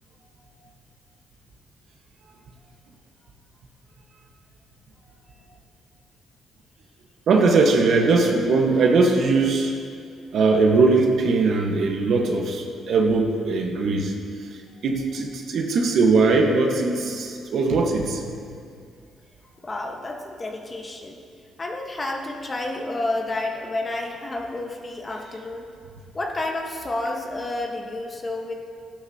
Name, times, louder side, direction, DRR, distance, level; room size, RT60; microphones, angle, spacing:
voice 1, 7.3-9.7 10.3-14.1 14.8-18.2, right 3 dB, 65° right, 1 dB, 1.4 m, -20 dB
voice 2, 19.6-21.2 21.6-25.7 26.1-28.6, left 2 dB, 30° left, 1 dB, 1.4 m, -30 dB
15.0 x 11.5 x 2.9 m, 2.3 s
cardioid pair, 90°, 0 cm